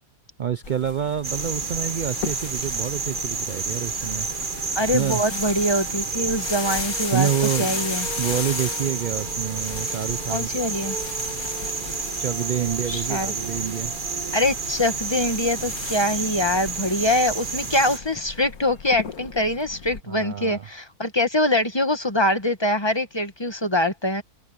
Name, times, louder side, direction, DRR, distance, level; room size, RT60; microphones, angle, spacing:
voice 1, 0.4-4.3 4.9-5.2 7.1-7.8 8.2-10.6 12.2-13.9 20.1-20.7, right 9 dB, 70° right, 0.4 m, -27 dB
sound 1, 0.6-20.0, left 6 dB, 75° left, 2.0 m, -37 dB
sound 2, 1.2-18.0, right 4 dB, 35° right, 1.4 m, -30 dB
sound 3, 3.6-16.5, right 7 dB, 85° right, 1.8 m, -42 dB
voice 2, 4.7-7.3 7.6-8.1 10.3-10.9 12.9-13.3 14.3-24.2, left 1 dB, 20° left, 1.5 m, -24 dB
omnidirectional pair, 1.5 m